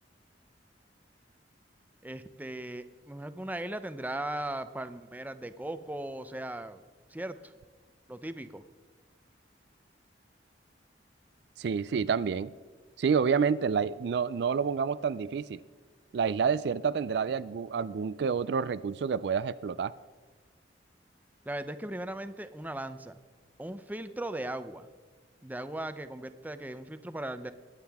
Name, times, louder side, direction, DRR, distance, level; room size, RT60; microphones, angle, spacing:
voice 1, 2.0-6.8 7.1-7.5 8.1-8.6 21.5-23.2 23.6-24.9 25.4-27.5, right 1 dB, 10° right, 11 dB, 0.5 m, -38 dB
voice 2, 11.6-12.5 13.0-15.6 16.1-19.9, right 6 dB, 65° right, 16 dB, 0.4 m, -28 dB
22.0 x 9.2 x 3.5 m, 1.4 s
head